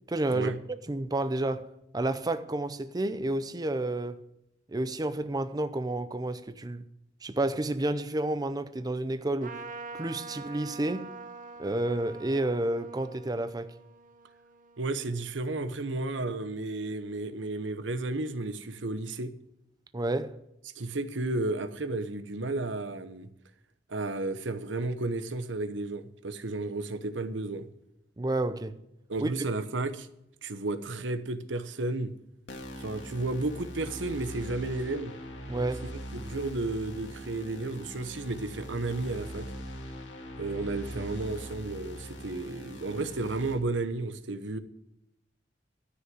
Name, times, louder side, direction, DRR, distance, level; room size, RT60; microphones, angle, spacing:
voice 1, 0.1-0.5 0.9-4.2 4.7-6.9 7.2-9.6 9.9-11.1 11.6-13.7 19.9-20.4 28.2-28.8 29.2-29.3 35.5-35.9, right 2 dB, 20° right, 0.6 m, -30 dB
Trumpet, 9.4-15.2, right 3 dB, 45° right, 0.9 m, -45 dB
voice 2, 14.8-19.3 20.8-23.3 23.9-27.7 29.1-30.1 30.4-32.1 32.8-35.1 36.1-39.5 40.4-44.6, right 2 dB, 90° right, 1.0 m, -33 dB
sound 1, 32.5-43.5, equal, 85° left, 2.0 m, -42 dB
13.0 x 6.3 x 9.4 m
head